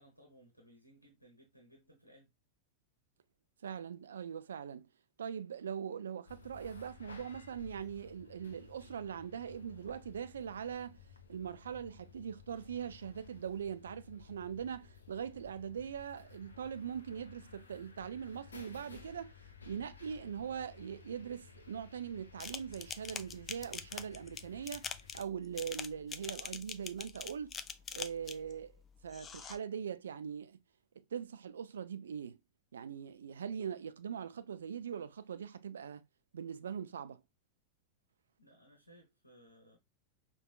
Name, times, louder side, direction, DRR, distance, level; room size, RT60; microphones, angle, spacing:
voice 1, 0.0-2.3 38.4-39.8, equal, 90° right, 0.9 m, -61 dB
voice 2, 3.6-4.9 5.2-11.0 11.3-19.3 19.7-27.6 27.9-28.7 29.0-30.6 31.0-32.4 32.7-36.1 36.3-37.2, right 8 dB, 65° right, 0.3 m, -41 dB
sound 1, 6.3-25.2, left 6 dB, 75° left, 0.7 m, -56 dB
sound 2, 22.4-28.5 29.1-29.6, left 6 dB, 25° left, 0.3 m, -43 dB
4.9 x 2.3 x 2.3 m
figure-of-eight pair, 90°, 0 cm